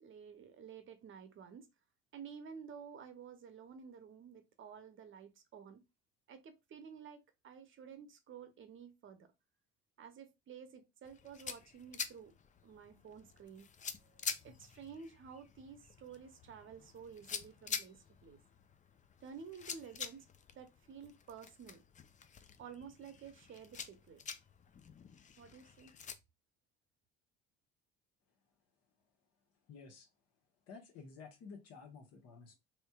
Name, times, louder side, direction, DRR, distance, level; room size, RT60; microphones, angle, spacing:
voice 1, 0.0-1.7 2.1-5.8 6.3-9.3 10.0-12.3 12.6-13.7 14.0-18.4 19.2-20.2 20.5-21.8 22.6-24.2 25.4-25.9, right 7 dB, 40° right, 0.8 m, -52 dB
sound 1, 11.0-26.1, left 6 dB, 25° left, 0.4 m, -47 dB
voice 2, 29.7-30.1 30.7-32.6, left 5 dB, 55° left, 1.2 m, -52 dB
3.2 x 3.0 x 2.3 m
hypercardioid pair, 65°, 30 cm